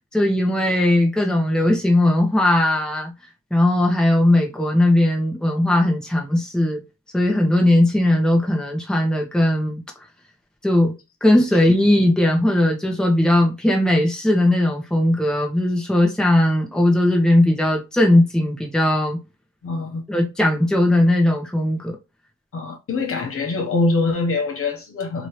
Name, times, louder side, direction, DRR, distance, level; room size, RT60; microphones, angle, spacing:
voice 1, 0.1-3.1 3.5-6.8 7.1-9.8 10.6-10.9 11.2-19.2 20.1-22.0, left 1 dB, ahead, 1.0 m, -18 dB
voice 2, 19.6-20.0 22.5-25.3, left 3 dB, 45° left, 1.0 m, -23 dB
3.0 x 2.7 x 3.1 m
cardioid pair, 90°, 30 cm